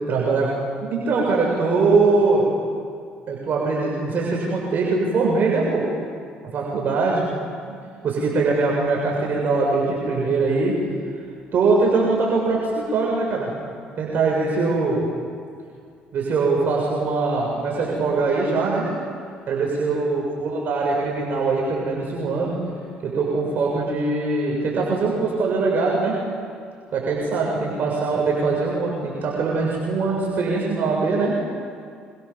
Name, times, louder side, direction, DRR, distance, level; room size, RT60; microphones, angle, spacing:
voice 1, 0.1-0.5 0.8-2.5 3.3-5.8 6.5-7.3 8.0-10.7 11.5-13.5 14.0-15.0 16.1-18.9 19.5-22.6 23.0-26.2 26.9-31.3, right 3 dB, 55° right, -3 dB, 7.3 m, -22 dB
27.5 x 26.0 x 7.5 m, 2.3 s
supercardioid pair, 75°, 4 cm